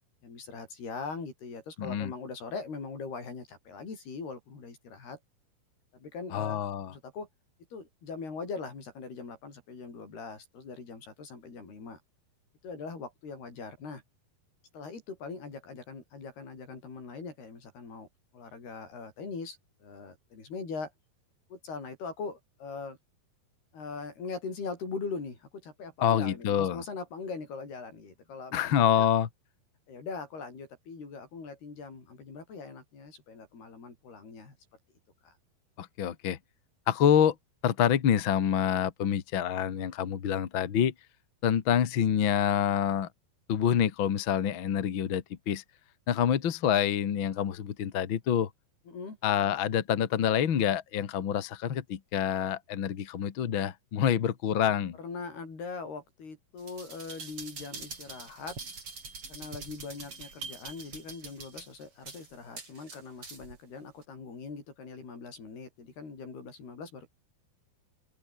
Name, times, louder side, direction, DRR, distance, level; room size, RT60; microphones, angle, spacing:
voice 1, 0.2-5.2 5.9-6.6 6.9-7.3 7.7-12.0 12.6-14.0 14.7-18.1 18.3-20.9 21.5-23.0 23.7-28.6 29.0-29.1 29.9-34.6 35.2-35.3 48.9-49.2 55.0-58.6 59.3-67.1, left 4 dB, 70° left, 9.3 m, -41 dB
voice 2, 1.8-2.1 6.3-6.9 26.0-26.8 28.5-29.3 35.8-36.4 36.9-37.3 37.6-40.9 41.4-43.1 43.5-45.6 46.1-48.5 49.2-55.0, left 9 dB, 55° left, 1.4 m, -27 dB
sound 1, 56.6-63.6 64.0-64.1, right 4 dB, 35° right, 5.3 m, -44 dB
open air
omnidirectional pair, 4.7 m